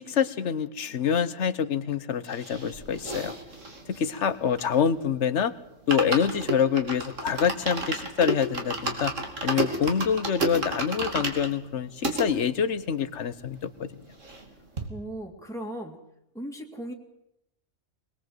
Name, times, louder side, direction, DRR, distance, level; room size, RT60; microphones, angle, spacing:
voice 1, 0.0-3.4 3.9-5.5 5.9-9.1 9.4-14.0, left 7 dB, 70° left, 14 dB, 1.3 m, -26 dB
sound 1, 2.3-5.1 5.4-5.5 5.7-12.3 12.8-12.9 13.1-13.2 13.5-14.5 14.8-14.9, right 2 dB, 80° right, 3.2 m, -32 dB
voice 2, 14.9-16.0 16.3-16.9, right 1 dB, ahead, 1 dB, 2.2 m, -37 dB
22.0 x 20.0 x 7.9 m, 0.84 s
omnidirectional pair, 1.3 m